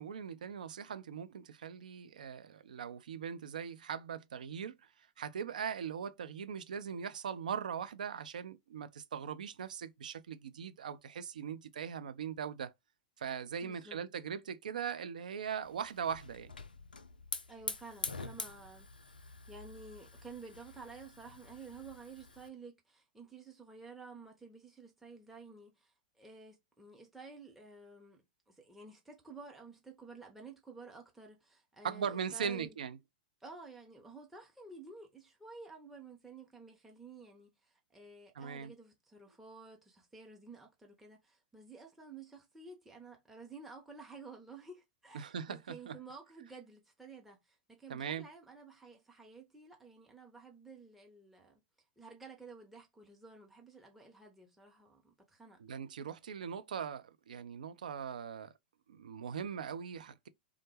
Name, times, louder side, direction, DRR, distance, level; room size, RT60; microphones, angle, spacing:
voice 1, 0.0-4.8 5.2-12.7 13.2-16.5 31.8-33.0 38.4-38.7 45.1-46.0 47.9-48.3 55.6-58.5 58.9-60.3, right 7 dB, 60° right, 0.4 m, -40 dB
voice 2, 13.6-14.0 17.5-19.2 19.5-32.8 33.4-51.6 52.0-55.6, right 4 dB, 5° right, 0.6 m, -52 dB
Hiss / Fire, 15.6-22.5, left 4 dB, 75° left, 0.3 m, -46 dB
3.5 x 2.1 x 3.2 m
figure-of-eight pair, 100°, 5 cm